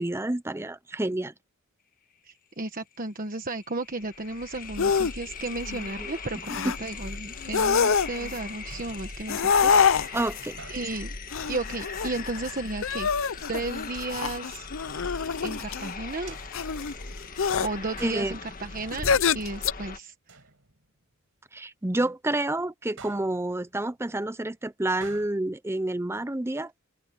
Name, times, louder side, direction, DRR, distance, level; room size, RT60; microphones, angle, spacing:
voice 1, 0.0-1.3 6.0-6.1 10.1-10.6 18.0-18.4 21.5-26.7, right 1 dB, 10° right, 0.6 m, -29 dB
voice 2, 2.2-10.3 10.7-11.1 11.5-13.1 13.5-14.7 15.4-16.4 17.6-20.4, right 2 dB, 40° right, 1.3 m, -34 dB
sound 1, 3.0-3.1 3.3-20.0, left 4 dB, 40° left, 1.7 m, -39 dB
sound 2, 4.8-5.1 5.5-5.9 6.5-6.8 7.4-8.4 9.3-10.4 11.3-12.5 12.8-15.9 16.5-16.9 17.4-17.7 18.9-19.7, left 6 dB, 65° left, 0.6 m, -25 dB
sound 3, 7.1-7.9 8.7-9.8 10.6-11.6 12.3-13.2 13.9-14.7 16.3-17.4 18.0-19.0 19.3-19.9 20.3-21.1 23.0-23.9 25.0-25.3, right 4 dB, 65° right, 7.1 m, -51 dB
open air
head